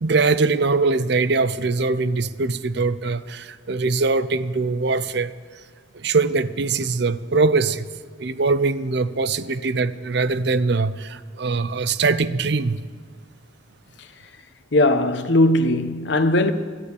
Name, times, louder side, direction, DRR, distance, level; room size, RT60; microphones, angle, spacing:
voice 1, 0.0-5.3 5.9-7.9 8.2-12.8, right 3 dB, 60° right, 0.6 m, -22 dB
voice 2, 14.7-16.5, left 1 dB, 60° left, 0.8 m, -18 dB
12.5 x 11.5 x 8.3 m
head